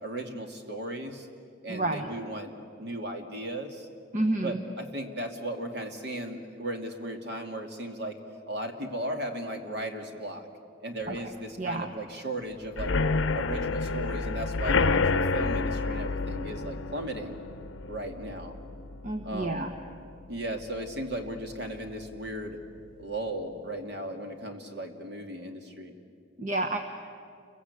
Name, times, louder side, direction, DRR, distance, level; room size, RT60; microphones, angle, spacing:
voice 1, 0.0-1.3 1.6-3.9 4.4-8.2 8.5-10.4 10.8-12.9 13.3-17.4 17.9-18.6 19.2-19.7 20.3-22.6 23.0-25.9, right 1 dB, 55° right, 4 dB, 2.6 m, -36 dB
voice 2, 1.7-2.1 4.1-4.6 11.1-11.2 11.6-11.9 19.0-19.7 26.4-26.8, right 2 dB, 40° right, 4 dB, 1.2 m, -29 dB
sound 1, 12.7-20.4 20.7-21.1 21.4-21.5 21.9-22.0, left 3 dB, 70° left, 0.7 m, -29 dB
29.5 x 23.0 x 8.4 m, 2.4 s
head